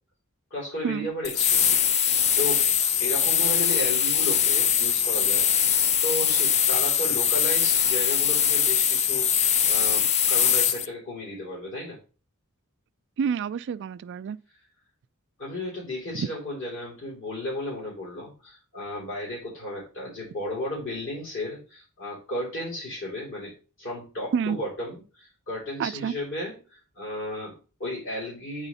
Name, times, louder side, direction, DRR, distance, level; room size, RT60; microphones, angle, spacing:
voice 1, 0.5-2.7 3.0-12.0 15.4-28.7, left 1 dB, 60° left, 3.3 m, -34 dB
sound 1, 1.2-10.9, left 8 dB, 30° left, 0.3 m, -22 dB
voice 2, 13.2-14.4 16.1-16.3 24.3-24.6 25.8-26.1, right 7 dB, 50° right, 0.3 m, -28 dB
8.9 x 3.7 x 4.1 m
head